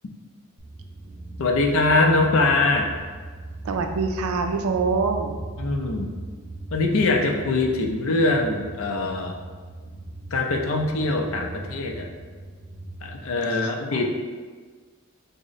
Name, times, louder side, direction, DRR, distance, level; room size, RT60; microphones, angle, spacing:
sound 1, 0.6-13.2, right 2 dB, 25° right, 0.6 m, -38 dB
voice 1, 1.4-2.9 5.6-6.1 6.7-9.4 10.3-12.1 13.0-14.1, left 2 dB, 65° left, 2 dB, 0.4 m, -22 dB
voice 2, 3.6-5.4 13.6-14.0, right 4 dB, 80° right, 5 dB, 0.4 m, -25 dB
3.6 x 2.1 x 3.9 m, 1.5 s
head